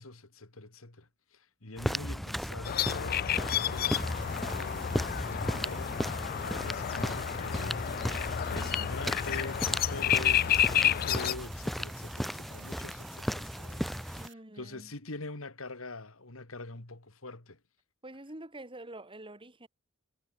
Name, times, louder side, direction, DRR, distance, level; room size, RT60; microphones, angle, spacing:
voice 1, 0.0-17.6, left 2 dB, 90° left, 2.7 m, -44 dB
sound 1, 1.8-14.3, equal, ahead, 0.7 m, -36 dB
sound 2, 2.6-11.3, left 10 dB, 45° left, 0.4 m, -30 dB
sound 3, 3.5-14.3, right 13 dB, 60° right, 7.3 m, -55 dB
voice 2, 14.2-14.9 18.0-19.7, right 1 dB, 25° right, 3.4 m, -46 dB
head